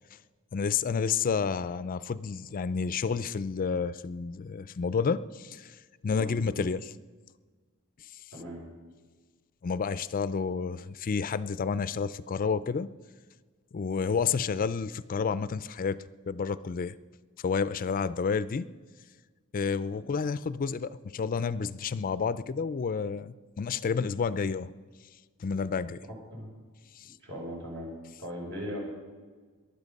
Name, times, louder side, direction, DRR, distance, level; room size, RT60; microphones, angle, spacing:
voice 1, 0.5-5.8 6.0-6.9 9.6-12.9 13.7-16.0 16.3-17.0 17.4-18.7 19.5-24.7 25.4-26.0 27.0-27.1, left 5 dB, 40° left, 16 dB, 0.4 m, -30 dB
voice 2, 8.3-8.6 26.3-26.5 27.2-27.9 28.2-28.8, equal, 65° right, -2 dB, 5.6 m, -38 dB
19.0 x 11.5 x 5.3 m, 1.4 s
head